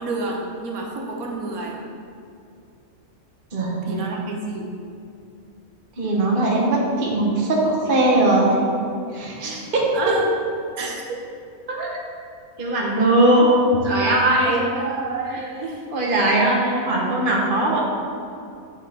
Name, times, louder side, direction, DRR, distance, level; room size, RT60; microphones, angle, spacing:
voice 1, 0.0-1.8 3.8-4.7 9.4-10.3 10.8-11.2 14.5-15.8 17.7-17.8, right 3 dB, 85° right, 0 dB, 1.3 m, -29 dB
voice 2, 3.5-4.0 6.0-8.7 9.1-9.9 11.7-12.0 12.6-13.5 13.8-14.6 15.3-15.4 15.9-17.8, right 1 dB, 40° right, -3 dB, 1.2 m, -20 dB
8.1 x 4.2 x 4.2 m, 2.6 s
omnidirectional pair, 1.5 m